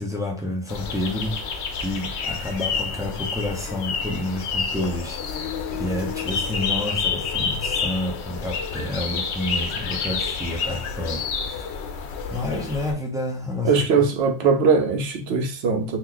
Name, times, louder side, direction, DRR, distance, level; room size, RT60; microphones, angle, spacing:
voice 1, 0.0-11.7 12.3-14.1, left 1 dB, 5° right, 0.5 m, -29 dB
sound 1, 0.7-12.9, left 5 dB, 80° left, 0.9 m, -29 dB
voice 2, 13.6-16.0, right 5 dB, 70° right, 0.9 m, -20 dB
3.0 x 2.4 x 3.8 m
omnidirectional pair, 1.1 m